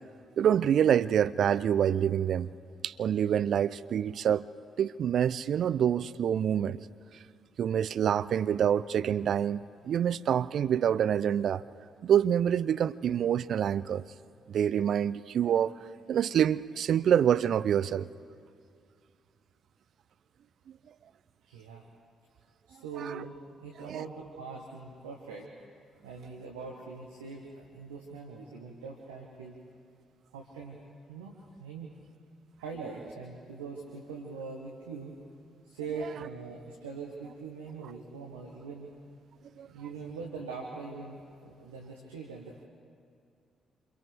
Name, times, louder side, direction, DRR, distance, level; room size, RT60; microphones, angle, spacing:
voice 1, 0.4-2.5 2.8-4.4 4.8-6.8 7.6-11.6 12.0-14.0 14.5-15.7 16.1-18.1 23.0-23.2 23.9-24.0 39.6-39.7, right 9 dB, 55° right, 0.4 m, -26 dB
voice 2, 21.5-21.8 22.7-23.3 23.6-25.5 26.0-29.6 30.3-30.8 31.1-31.9 32.6-35.1 35.6-38.9 39.6-42.6, right 4 dB, 80° right, 1.4 m, -42 dB
28.0 x 27.0 x 3.5 m
figure-of-eight pair, 40°, 0 cm